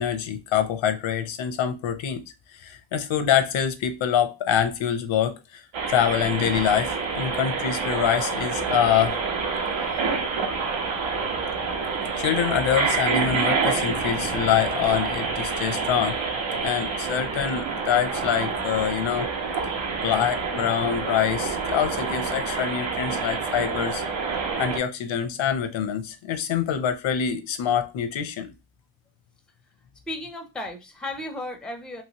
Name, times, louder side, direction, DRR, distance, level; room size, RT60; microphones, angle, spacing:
voice 1, 0.0-2.2 2.5-9.2 12.2-16.2 16.6-19.3 20.0-24.0 24.6-28.5, left 9 dB, 85° left, 0.7 m, -25 dB
sound 1, 5.7-24.8, right 5 dB, 85° right, 1.0 m, -27 dB
voice 2, 30.1-32.0, left 1 dB, ahead, 0.4 m, -34 dB
3.0 x 2.9 x 2.8 m
wide cardioid pair, 135°, 45 cm